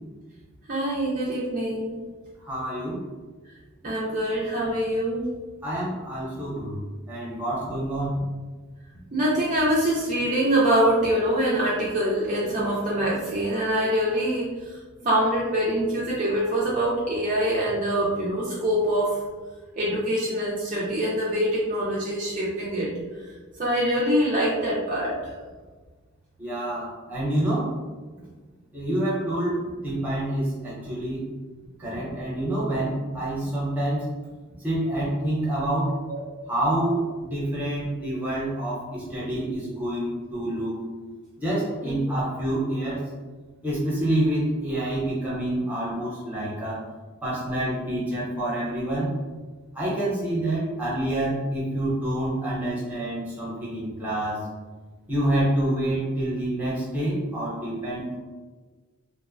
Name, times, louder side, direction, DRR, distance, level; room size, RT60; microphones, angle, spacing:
voice 1, 0.7-2.0 3.8-5.3 9.1-19.2 19.8-22.9 23.6-25.2 36.1-36.2 41.8-42.2, right 1 dB, 40° right, -7 dB, 0.4 m, -24 dB
voice 2, 2.4-3.0 5.6-6.8 7.1-8.2 26.4-27.7 28.7-31.2 31.8-34.1 34.6-35.9 36.5-40.8 41.4-43.0 43.6-46.8 47.2-49.1 49.7-54.4 55.1-58.2, right 1 dB, 10° right, -8 dB, 0.7 m, -27 dB
2.6 x 2.1 x 2.4 m, 1.4 s
head